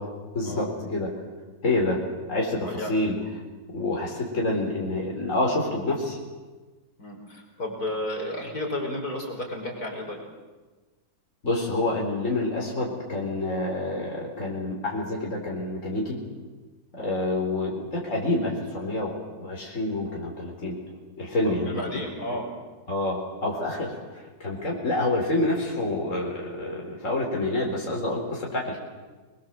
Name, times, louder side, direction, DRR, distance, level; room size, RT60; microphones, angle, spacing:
voice 1, 0.3-1.1 1.6-2.0 2.3-3.1 3.7-6.2 11.4-16.2 16.9-20.8 21.2-21.8 22.3-22.4 22.9-28.8, left 2 dB, 50° left, -2 dB, 4.7 m, -27 dB
voice 2, 7.0-10.2 17.0-17.1 21.4-22.5, left 1 dB, 65° left, 1 dB, 5.8 m, -32 dB
29.0 x 21.5 x 7.7 m, 1.3 s
omnidirectional pair, 1.7 m